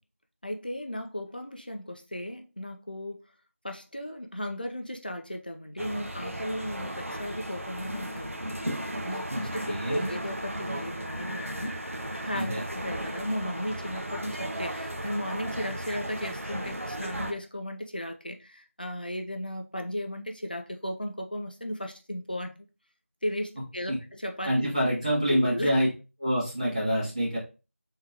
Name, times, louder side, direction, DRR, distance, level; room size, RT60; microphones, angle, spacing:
voice 1, 0.4-3.2 3.6-8.4 9.0-11.8 12.2-22.5 23.2-24.7 25.3-25.7, equal, 40° left, 0.6 m, -35 dB
sound 1, 5.8-17.3, right 1 dB, 75° right, 0.9 m, -35 dB
voice 2, 9.3-10.1 12.3-12.6 23.9-24.0 24.4-25.9 26.2-27.4, equal, 30° right, 2.1 m, -26 dB
3.7 x 3.5 x 2.9 m
figure-of-eight pair, 175°, 7 cm